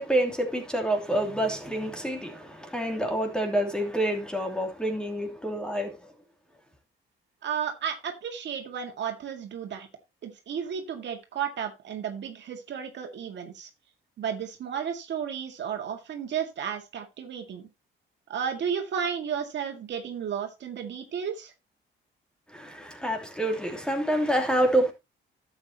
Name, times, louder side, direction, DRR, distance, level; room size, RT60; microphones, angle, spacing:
voice 1, 0.0-6.0 22.5-24.9, right 1 dB, 5° left, 3.0 m, -27 dB
voice 2, 7.4-9.9 10.2-13.7 14.2-17.7 18.3-21.5, right 7 dB, 65° right, 2.0 m, -33 dB
12.0 x 8.0 x 2.9 m
cardioid pair, 90°, 20 cm